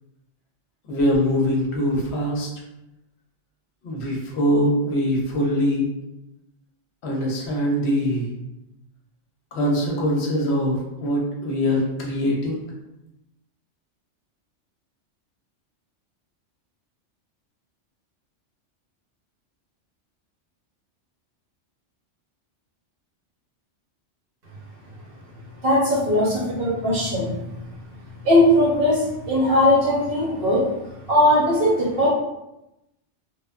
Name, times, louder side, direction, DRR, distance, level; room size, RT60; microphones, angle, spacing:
voice 1, 0.9-2.5 3.8-5.9 7.0-8.3 9.5-12.6, equal, 70° left, -1 dB, 0.8 m, -23 dB
voice 2, 25.6-27.6 28.2-30.7 31.1-32.1, left 1 dB, 55° right, -4 dB, 0.9 m, -19 dB
3.0 x 2.0 x 2.3 m, 0.91 s
omnidirectional pair, 1.2 m